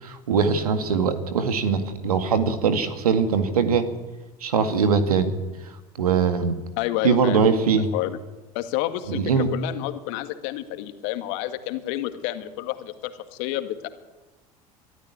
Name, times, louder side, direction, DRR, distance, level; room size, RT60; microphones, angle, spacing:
voice 1, 0.0-3.9 4.4-5.3 6.0-6.6 7.0-7.9 9.1-9.5, right 5 dB, 80° right, 9 dB, 2.1 m, -21 dB
voice 2, 6.8-8.2 8.5-13.9, left 14 dB, 60° left, 9 dB, 2.0 m, -30 dB
23.0 x 13.5 x 9.6 m, 1.1 s
hypercardioid pair, 75°, 19 cm